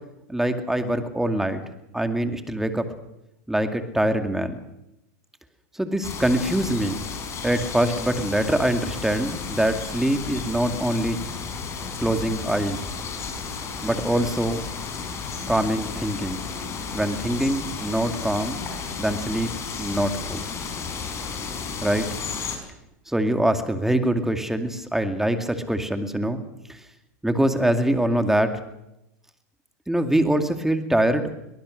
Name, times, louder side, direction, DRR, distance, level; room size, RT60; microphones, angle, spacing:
voice 1, 0.3-1.6 1.9-2.9 3.5-4.6 5.7-7.0 7.4-11.2 12.0-12.8 13.8-14.6 15.5-16.4 16.9-18.6 19.0-19.5 19.8-20.4 21.8-22.1 23.1-26.4 26.7-26.8 27.2-28.6 29.9-31.3, right 1 dB, 5° right, 7 dB, 2.3 m, -24 dB
sound 1, 6.0-22.6, left 5 dB, 30° left, 5.4 m, -33 dB
23.0 x 19.0 x 6.6 m, 0.87 s
hypercardioid pair, 110°, 9 cm